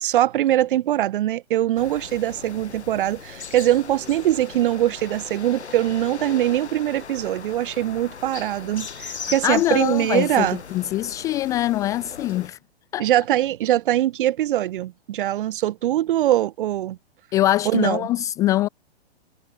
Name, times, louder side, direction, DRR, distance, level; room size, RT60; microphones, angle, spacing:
voice 1, 0.0-10.6 13.0-17.0 17.7-18.1, right 13 dB, 55° right, 0.9 m, -22 dB
sound 1, 1.8-12.5, left 6 dB, 90° left, 1.3 m, -39 dB
voice 2, 9.4-12.6 12.9-13.1 17.3-18.7, left 14 dB, 10° left, 0.4 m, -23 dB
hypercardioid pair, 125°, 32 cm